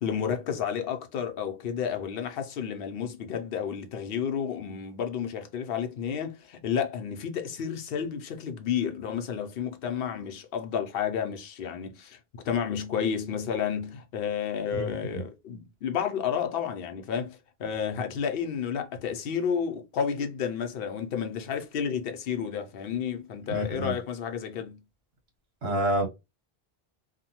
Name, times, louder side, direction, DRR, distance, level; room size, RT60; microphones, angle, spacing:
voice 1, 0.0-24.8, left 7 dB, 70° left, 0.8 m, -31 dB
voice 2, 14.8-15.2 23.5-23.9 25.6-26.1, right 1 dB, 75° right, 1.3 m, -28 dB
2.8 x 2.2 x 2.8 m
omnidirectional pair, 1.0 m